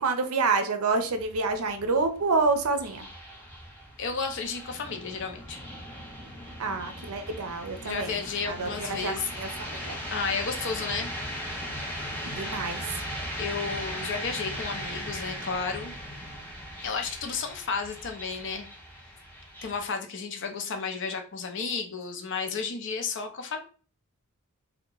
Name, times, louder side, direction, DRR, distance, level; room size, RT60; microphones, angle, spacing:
voice 1, 0.0-3.1 6.6-10.0 12.3-13.0, right 3 dB, 75° right, 7 dB, 0.6 m, -28 dB
sound 1, 0.9-19.9, equal, 10° left, 0.7 m, -38 dB
voice 2, 4.0-5.6 7.8-9.3 10.1-11.1 13.4-15.9 16.8-18.7 19.6-23.6, left 5 dB, 55° left, 5 dB, 0.6 m, -32 dB
2.8 x 2.2 x 3.7 m, 0.39 s
head